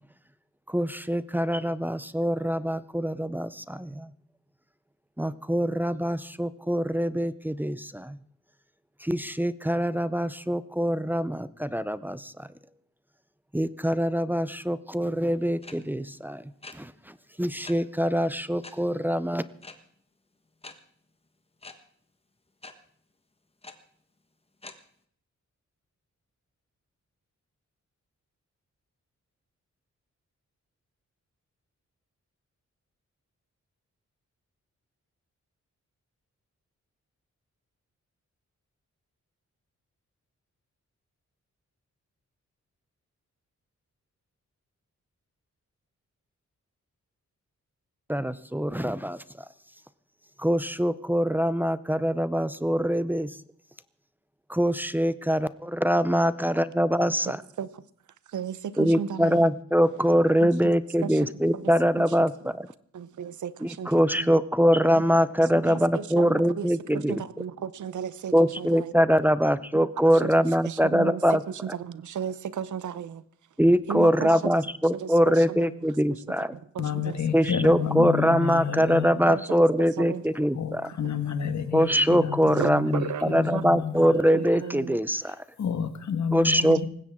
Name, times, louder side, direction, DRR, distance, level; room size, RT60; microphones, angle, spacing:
voice 1, 0.7-4.1 5.2-8.1 9.0-12.3 13.5-16.4 16.8-16.9 17.4-19.4 48.1-49.2 50.4-53.3 54.5-57.4 58.8-62.3 63.6-67.1 68.3-71.4 73.6-76.5 77.3-80.9 81.7-83.0 83.3-85.3 86.3-86.9, equal, 5° right, 15 dB, 0.6 m, -23 dB
sound 1, 15.6-15.7 16.6-16.7 17.6-17.7 18.6-18.7 19.6-19.7 20.6-20.7 21.6-21.7 22.6-22.7 23.6-23.7 24.6-24.7, left 3 dB, 20° left, 1.4 m, -42 dB
voice 2, 57.3-57.8 58.3-59.6 60.4-60.7 61.0-62.2 62.4-62.6 62.9-64.3 65.0-65.1 65.4-68.9 69.7-73.2 73.9-74.6 74.9-78.0 78.7-78.8 79.2-80.5 82.4-85.0 86.6-86.9, right 8 dB, 90° right, 16 dB, 0.8 m, -36 dB
voice 3, 76.8-79.1 80.5-84.1 85.6-86.9, left 7 dB, 70° left, 8 dB, 1.7 m, -30 dB
19.5 x 16.0 x 3.7 m, 0.63 s
wide cardioid pair, 115°, 29 cm